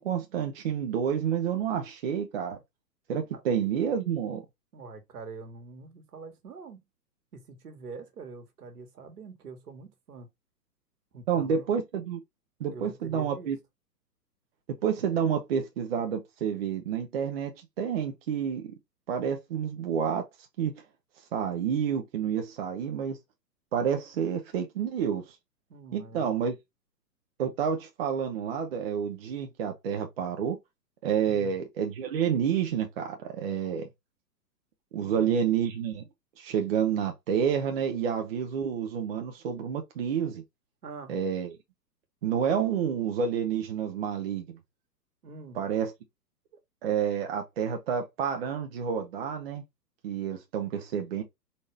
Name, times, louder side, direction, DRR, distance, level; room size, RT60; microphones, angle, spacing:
voice 1, 0.0-2.6 3.1-4.4 11.3-12.2 12.6-13.6 14.8-18.6 19.1-20.2 20.6-20.8 21.3-23.2 23.7-25.4 25.9-26.6 27.4-30.6 31.0-33.9 34.9-36.0 36.4-40.4 41.1-41.5 42.2-44.6 45.5-45.9 46.8-49.6 50.0-51.2, right 8 dB, 35° right, 0.6 m, -29 dB
voice 2, 4.7-6.8 7.3-10.3 11.1-11.7 12.7-13.5 25.7-26.5 33.6-33.8 35.0-35.5 40.8-41.1 45.2-45.6, right 4 dB, 65° right, 1.5 m, -45 dB
4.1 x 2.7 x 3.3 m
figure-of-eight pair, 120°, 49 cm